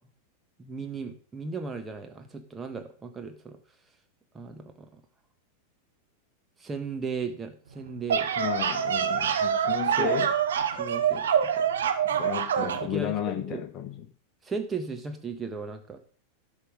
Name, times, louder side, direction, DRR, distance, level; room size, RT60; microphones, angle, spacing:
voice 1, 0.6-3.6 4.3-5.0 6.6-8.3 10.0-10.1 10.7-11.3 11.5-11.7 12.6-13.6 14.4-16.0, right 4 dB, 15° right, 5 dB, 1.6 m, -36 dB
sound 1, 7.9-12.9, right 8 dB, 65° right, 1.0 m, -26 dB
voice 2, 8.4-10.3 12.0-14.1, left 11 dB, 35° left, 6 dB, 1.3 m, -33 dB
11.5 x 5.7 x 5.3 m, 0.44 s
figure-of-eight pair, 90°, 0 cm